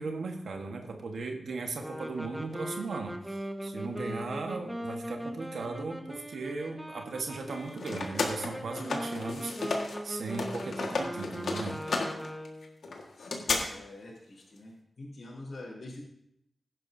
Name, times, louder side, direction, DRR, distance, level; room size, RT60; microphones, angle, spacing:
voice 1, 0.0-11.8, right 3 dB, 85° right, 3 dB, 1.4 m, -37 dB
sound 1, 1.8-12.8, equal, 10° right, 1.4 m, -40 dB
sound 2, 7.4-10.0 10.3-13.6, left 3 dB, 85° left, 1.7 m, -33 dB
voice 2, 12.9-16.0, left 2 dB, 65° left, -4 dB, 4.1 m, -46 dB
15.5 x 11.0 x 2.7 m, 0.77 s
wide cardioid pair, 85°, 0 cm